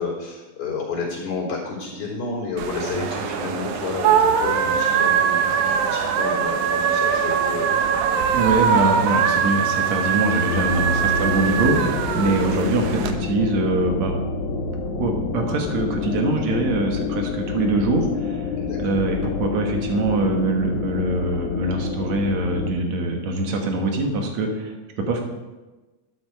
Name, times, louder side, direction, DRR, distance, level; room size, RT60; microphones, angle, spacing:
voice 1, 0.0-7.9 10.9-11.1 12.2-12.4 18.6-18.8, left 4 dB, 50° left, -2 dB, 4.8 m, -30 dB
sound 1, 2.6-13.1, right 7 dB, 85° right, 2.4 m, -22 dB
voice 2, 8.3-14.1 15.0-18.5 18.8-25.2, right 2 dB, 70° right, 3 dB, 2.9 m, -23 dB
sound 2, 10.5-22.7, left 5 dB, 75° left, 2.5 m, -28 dB
12.5 x 11.0 x 4.8 m, 1.2 s
omnidirectional pair, 3.4 m